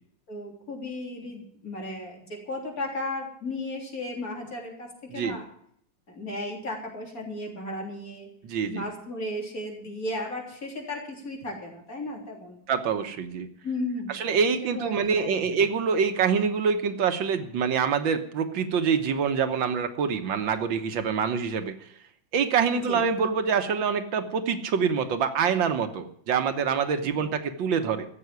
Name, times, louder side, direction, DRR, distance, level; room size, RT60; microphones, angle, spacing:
voice 1, 0.3-5.5 6.1-8.3 8.7-12.6 13.6-14.2 14.7-15.5 22.9-23.0, left 1 dB, 50° left, 0 dB, 4.0 m, -35 dB
voice 2, 8.4-8.8 12.7-13.5 14.1-21.7 22.3-28.1, right 6 dB, 90° right, 8 dB, 1.9 m, -25 dB
14.5 x 7.9 x 9.4 m, 0.66 s
omnidirectional pair, 2.0 m